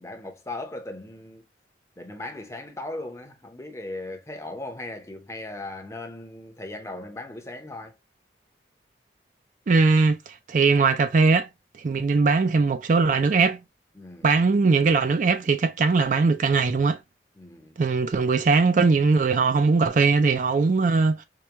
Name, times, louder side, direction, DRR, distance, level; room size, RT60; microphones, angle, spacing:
voice 1, 0.0-1.4 2.0-7.9 13.9-14.3 17.4-17.8, left 2 dB, 15° left, 0.7 m, -38 dB
voice 2, 9.7-11.5 11.8-13.6 14.2-17.0 17.8-21.2, right 4 dB, 45° right, 0.4 m, -20 dB
4.7 x 2.2 x 2.8 m
head